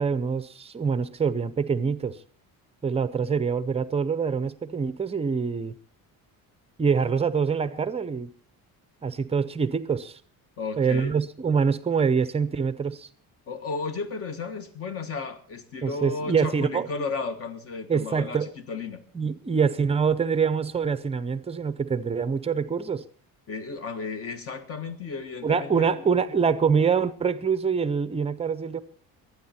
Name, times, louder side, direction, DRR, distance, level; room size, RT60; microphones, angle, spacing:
voice 1, 0.0-2.2 2.8-5.7 6.8-8.3 9.0-10.2 10.8-13.1 15.8-16.9 17.9-18.5 19.1-23.1 25.4-28.8, right 6 dB, 15° right, 0.6 m, -25 dB
voice 2, 10.6-11.2 13.5-19.0 23.5-26.0, left 4 dB, 40° left, 1.4 m, -34 dB
23.0 x 9.6 x 4.3 m
cardioid pair, 175°, 36 cm